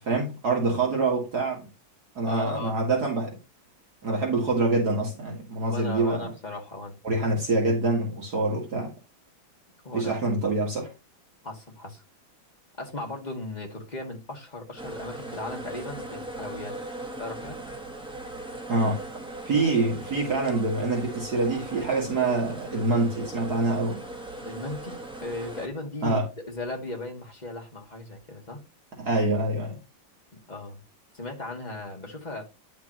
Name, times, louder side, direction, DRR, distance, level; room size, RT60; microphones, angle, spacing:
voice 1, 0.0-1.7 2.2-3.3 4.0-6.3 7.0-8.9 9.9-10.9 18.7-19.0 19.5-24.0 26.0-26.3 29.0-29.8, right 3 dB, 55° right, 2.4 m, -25 dB
voice 2, 2.3-2.8 5.7-6.9 9.8-10.1 11.4-12.0 12.8-16.8 17.2-17.6 24.4-28.6 30.3-30.8 31.1-32.4, left 2 dB, 20° left, 2.1 m, -37 dB
sound 1, 14.8-25.7, right 2 dB, 5° right, 1.1 m, -39 dB
10.0 x 5.9 x 3.0 m
omnidirectional pair, 2.1 m